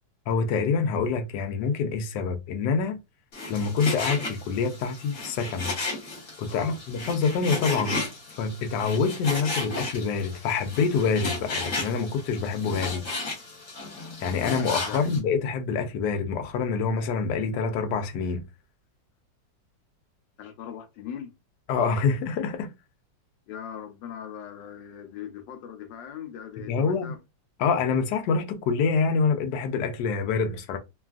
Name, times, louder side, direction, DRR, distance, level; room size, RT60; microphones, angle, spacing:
voice 1, 0.3-3.0 3.5-5.7 6.4-8.0 8.4-13.0 14.2-18.4 21.7-22.7 26.7-27.1 27.6-30.8, left 5 dB, 75° left, 1.1 m, -26 dB
Frying (food), 3.3-15.2, left 2 dB, 50° left, 1.5 m, -34 dB
voice 2, 6.5-6.8 14.9-15.1 20.4-21.3 23.5-27.2, left 9 dB, 90° left, 1.3 m, -40 dB
3.2 x 2.3 x 2.4 m
omnidirectional pair, 1.9 m